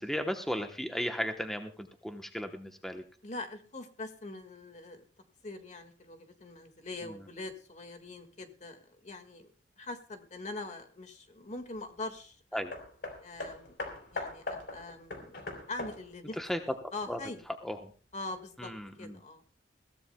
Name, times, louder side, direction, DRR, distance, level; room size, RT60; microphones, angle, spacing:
voice 1, 0.0-3.0 7.0-7.2 12.5-12.7 16.4-17.2 17.5-17.9 18.6-19.2, equal, ahead, 4 dB, 0.9 m, -35 dB
voice 2, 3.2-5.1 5.4-9.5 9.8-12.4 13.2-13.8 14.1-15.3 15.7-16.4 16.9-17.4 18.1-18.7 19.0-19.4, left 2 dB, 40° left, 7 dB, 1.7 m, -43 dB
Hammer, 12.7-17.4 18.3-18.4, left 2 dB, 70° left, 3.2 m, -41 dB
21.5 x 16.0 x 2.2 m, 0.39 s
head